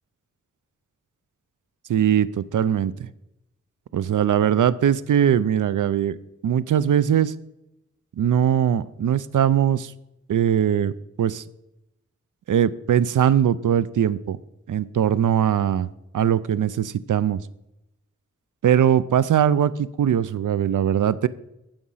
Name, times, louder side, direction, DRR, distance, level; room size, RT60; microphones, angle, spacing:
voice 1, 1.9-2.9 3.9-6.2 6.4-7.3 8.2-9.9 10.3-10.9 11.2-11.4 12.5-14.4 14.7-15.9 16.1-17.4 18.6-21.3, right 9 dB, 85° right, 17 dB, 0.5 m, -20 dB
14.5 x 5.1 x 5.6 m, 0.87 s
wide cardioid pair, 125°, 30 cm